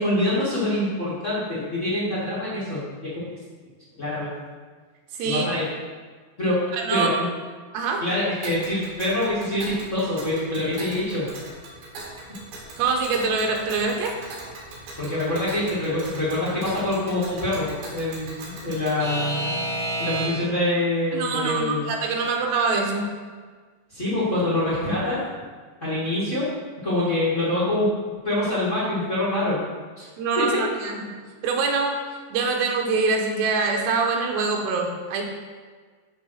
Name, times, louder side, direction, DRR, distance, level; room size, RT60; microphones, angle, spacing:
voice 1, 0.0-3.3 4.0-4.3 5.2-5.6 6.4-6.6 6.9-7.3 8.0-11.2 15.0-19.6 20.0-21.9 23.9-25.2 25.8-26.5 26.8-27.9 28.2-29.6 30.0-30.1 30.3-30.6, left 1 dB, 30° left, -9 dB, 1.3 m, -25 dB
voice 2, 6.7-7.1 7.7-8.0 12.8-14.2 21.1-23.1 30.2-31.1 31.4-32.0 32.3-35.2, right 4 dB, 75° right, 1 dB, 3.0 m, -24 dB
Alarm / Clock, 8.4-20.6, right 1 dB, 60° right, 3.8 m, -35 dB
11.0 x 4.0 x 6.4 m, 1.5 s
omnidirectional pair, 5.1 m